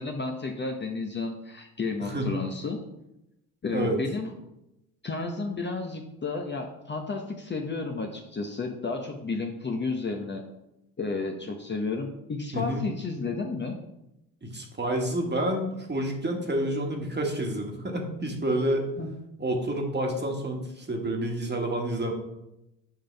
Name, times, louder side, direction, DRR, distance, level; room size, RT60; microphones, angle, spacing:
voice 1, 0.0-2.8 3.6-4.3 5.0-10.4 11.0-13.7 19.0-19.1, left 3 dB, 25° left, 3 dB, 0.9 m, -32 dB
voice 2, 14.4-18.9 19.4-22.1, right 1 dB, 25° right, 2 dB, 1.7 m, -29 dB
7.4 x 5.0 x 3.4 m, 0.88 s
hypercardioid pair, 55°, 44 cm